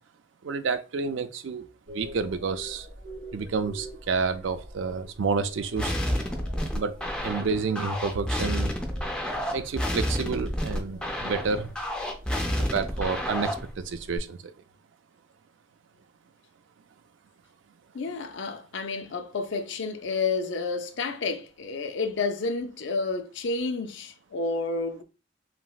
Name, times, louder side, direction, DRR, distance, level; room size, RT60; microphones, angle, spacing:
voice 1, 0.4-2.9 3.3-5.9 6.7-7.0 7.2-8.7 9.5-11.7 12.6-14.5, right 5 dB, 70° right, 0.4 m, -30 dB
sound 1, 1.9-14.2, equal, 85° right, 2.0 m, -45 dB
sound 2, 5.8-13.7, equal, 5° left, 0.5 m, -30 dB
voice 2, 17.9-25.0, left 3 dB, 65° left, 0.5 m, -30 dB
5.8 x 2.0 x 2.3 m
head